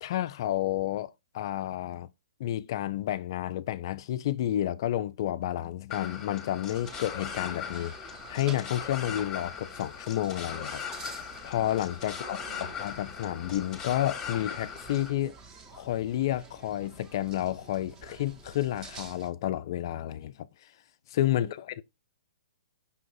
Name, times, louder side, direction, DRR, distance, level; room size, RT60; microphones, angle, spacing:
voice 1, 0.0-2.1 2.4-7.9 8.3-10.8 11.4-12.4 12.8-15.4 15.7-20.5 21.1-21.8, left 13 dB, 50° left, 0.3 m, -30 dB
sound 1, 5.9-15.1, left 7 dB, 15° left, 1.0 m, -39 dB
sound 2, 6.7-19.3, right 3 dB, 20° right, 0.8 m, -49 dB
voice 2, 12.0-12.8 21.3-21.5, right 3 dB, 85° right, 0.6 m, -48 dB
5.5 x 2.4 x 3.9 m
figure-of-eight pair, 120°, 3 cm